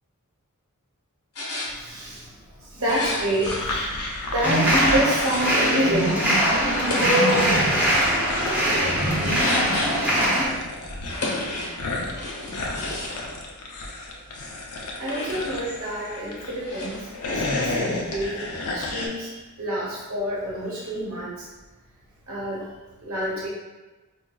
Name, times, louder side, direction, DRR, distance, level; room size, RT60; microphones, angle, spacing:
sound 1, 1.3-1.7 2.8-3.6 4.7-5.7 6.7-7.7 9.2-10.2 11.1-11.8 12.1-13.3 15.0-15.5 16.6-17.1, left 2 dB, 70° left, 1.0 m, -32 dB
voice 1, 1.6-2.2 2.7-4.1 4.3-6.2 6.6-8.0 15.0-18.4 18.7-21.4 22.3-22.7 23.0-23.5, right 1 dB, 65° right, -5 dB, 0.9 m, -28 dB
sound 2, 3.4-5.6 5.9-16.6 17.0-19.1, left 2 dB, 90° left, 0.6 m, -31 dB
sound 3, 4.4-10.5, right 1 dB, 5° right, 0.7 m, -22 dB
4.6 x 2.5 x 2.3 m, 1.1 s
head